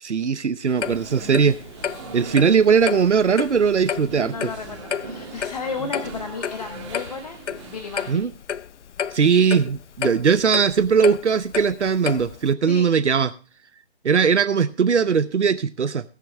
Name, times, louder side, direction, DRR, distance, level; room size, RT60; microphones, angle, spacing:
voice 1, 0.0-1.6 2.1-4.5 8.1-8.3 9.1-13.3 14.0-16.0, right 6 dB, 85° right, 13 dB, 0.8 m, -19 dB
sound 1, 0.7-8.1, right 4 dB, 25° right, 2.7 m, -40 dB
Clock, 0.8-12.5, left 8 dB, 90° left, 0.6 m, -32 dB
voice 2, 4.1-7.4 7.6-8.3 12.7-12.9, left 4 dB, 35° left, 5 dB, 1.2 m, -33 dB
20.0 x 7.6 x 3.3 m, 0.36 s
figure-of-eight pair, 160°, 34 cm